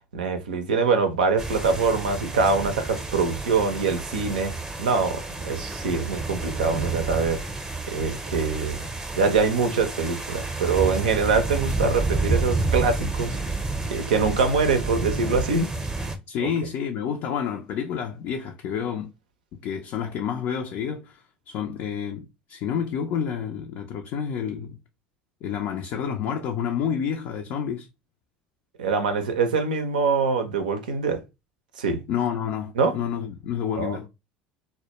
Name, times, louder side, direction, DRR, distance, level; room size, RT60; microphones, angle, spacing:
voice 1, 0.1-7.4 7.9-8.8 9.2-13.4 13.9-15.7 28.8-31.2 31.8-32.0 32.8-32.9 33.7-34.0, right 4 dB, 90° right, 0.4 m, -24 dB
sound 1, 1.4-16.2, right 3 dB, 15° right, 0.6 m, -30 dB
voice 2, 16.3-19.1 19.6-24.8 25.4-27.9 32.1-34.1, left 8 dB, 60° left, 0.4 m, -29 dB
2.1 x 2.1 x 2.9 m
hypercardioid pair, 80°, 5 cm